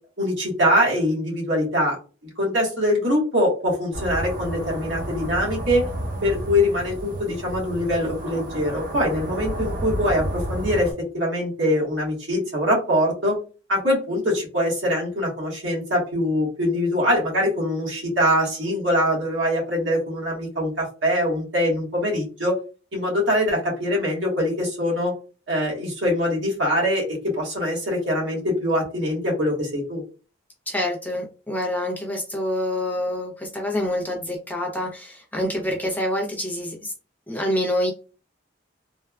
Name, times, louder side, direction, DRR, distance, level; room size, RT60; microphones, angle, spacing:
voice 1, 0.2-2.0 2.4-5.9 6.2-13.4 13.7-22.6 22.9-25.1 25.5-30.0, equal, 70° right, -2 dB, 1.4 m, -23 dB
sound 1, 3.9-10.9, right 1 dB, 45° right, 0.7 m, -31 dB
voice 2, 30.7-36.9 37.3-37.9, left 1 dB, 10° left, -1 dB, 0.5 m, -26 dB
3.2 x 2.2 x 2.3 m, 0.35 s
head